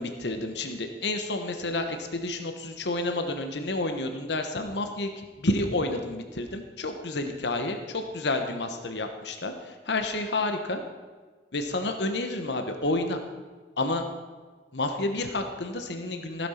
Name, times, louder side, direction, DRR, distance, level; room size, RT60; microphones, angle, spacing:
voice 1, 0.0-10.8 11.5-13.2 13.8-14.0 14.7-16.5, left 2 dB, 70° left, 6 dB, 1.1 m, -30 dB
15.5 x 7.7 x 5.8 m, 1.4 s
head